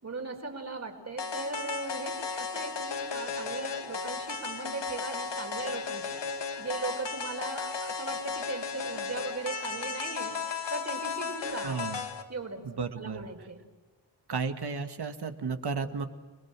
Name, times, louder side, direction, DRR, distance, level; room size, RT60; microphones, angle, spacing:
voice 1, 0.0-10.3 10.7-11.7 12.3-12.6 13.0-13.6, right 3 dB, 40° right, 4 dB, 4.8 m, -38 dB
sound 1, 1.2-12.2, left 5 dB, 80° left, 2.3 m, -35 dB
voice 2, 11.6-12.0 12.6-13.3 14.3-16.1, right 5 dB, 65° right, 8 dB, 2.1 m, -33 dB
30.0 x 22.0 x 7.6 m, 1.2 s
wide cardioid pair, 145°, 42 cm